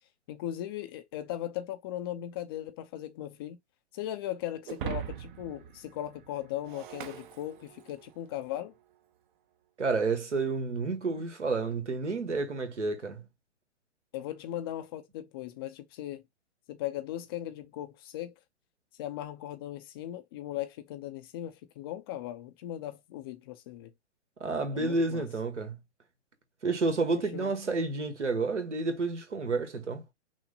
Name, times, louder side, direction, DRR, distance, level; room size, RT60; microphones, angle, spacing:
voice 1, 0.3-3.6 3.9-8.7 14.1-16.2 16.7-18.3 19.0-23.9 24.7-25.2 27.1-27.5, left 12 dB, 20° left, 0.4 m, -38 dB
Shatter, 4.7-8.1, right 10 dB, 45° right, 0.7 m, -41 dB
voice 2, 9.8-13.2 24.4-25.7 26.6-30.0, right 3 dB, 85° right, 1.5 m, -30 dB
6.0 x 2.1 x 3.8 m
hypercardioid pair, 125°, 34 cm